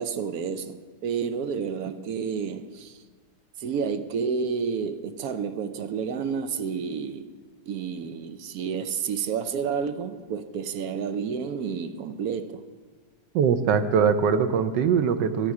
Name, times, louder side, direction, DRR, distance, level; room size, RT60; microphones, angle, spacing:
voice 1, 0.0-3.0 3.6-7.3 7.7-12.6, right 6 dB, 65° right, 1.0 m, -30 dB
voice 2, 13.3-15.5, right 6 dB, 90° right, 1.4 m, -22 dB
12.5 x 11.5 x 4.8 m
omnidirectional pair, 1.9 m